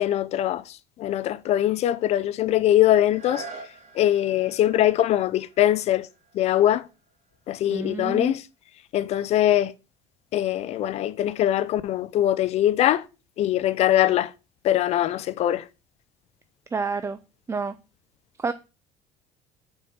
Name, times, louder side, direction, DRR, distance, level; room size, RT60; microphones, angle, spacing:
voice 1, 0.0-3.5 3.9-6.1 6.3-6.9 7.5-8.4 8.9-9.7 10.3-13.0 13.4-14.3 14.6-15.7, left 12 dB, 55° left, 0.5 m, -22 dB
sound 1, 3.0-8.6 9.2-9.3, right 4 dB, 55° right, 2.2 m, -46 dB
voice 2, 7.7-8.3 16.7-17.2 17.5-17.7 18.4-18.5, right 4 dB, 20° right, 0.4 m, -29 dB
5.3 x 4.7 x 5.8 m
supercardioid pair, 105°, 13 cm